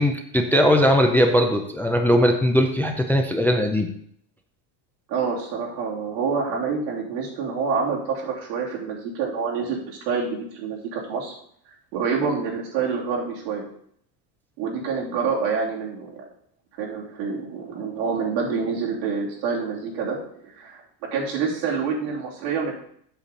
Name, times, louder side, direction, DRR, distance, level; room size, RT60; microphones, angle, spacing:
voice 1, 0.0-3.9, equal, 5° left, 4 dB, 0.4 m, -19 dB
voice 2, 5.1-11.3 11.9-13.7 14.6-16.2 16.8-22.7, right 5 dB, 90° right, -3 dB, 3.1 m, -27 dB
8.1 x 6.8 x 4.1 m, 0.66 s
supercardioid pair, 135°, 50 cm